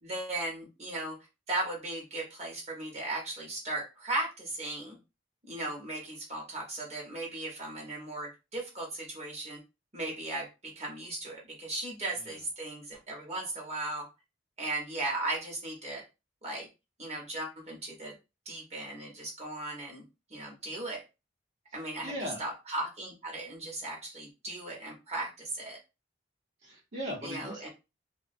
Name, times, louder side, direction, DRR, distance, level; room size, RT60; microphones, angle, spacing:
voice 1, 0.0-1.2 1.5-5.0 5.5-9.6 9.9-14.1 14.6-16.0 16.4-16.7 17.0-18.1 18.5-20.0 20.3-21.0 21.7-22.1 22.4-25.8 27.2-27.7, right 2 dB, 35° right, -1 dB, 0.8 m, -37 dB
voice 2, 21.7-22.4 26.6-27.7, equal, 65° right, -5 dB, 0.9 m, -39 dB
2.3 x 2.2 x 2.5 m, 0.27 s
head